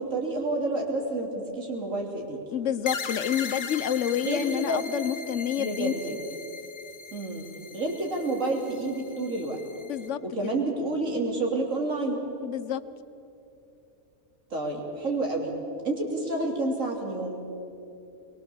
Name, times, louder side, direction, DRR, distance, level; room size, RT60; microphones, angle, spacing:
voice 1, 0.0-2.4 4.2-4.8 5.6-6.1 7.1-7.5 7.7-9.6 10.2-12.2 14.5-15.5 15.8-17.4, right 2 dB, 70° right, 0 dB, 3.6 m, -29 dB
voice 2, 2.5-5.9 9.9-10.5 12.4-12.8, left 10 dB, 65° left, 15 dB, 1.1 m, -29 dB
sound 1, 2.8-10.1, left 5 dB, 40° left, 0.9 m, -39 dB
22.5 x 21.5 x 7.1 m, 2.8 s
omnidirectional pair, 1.4 m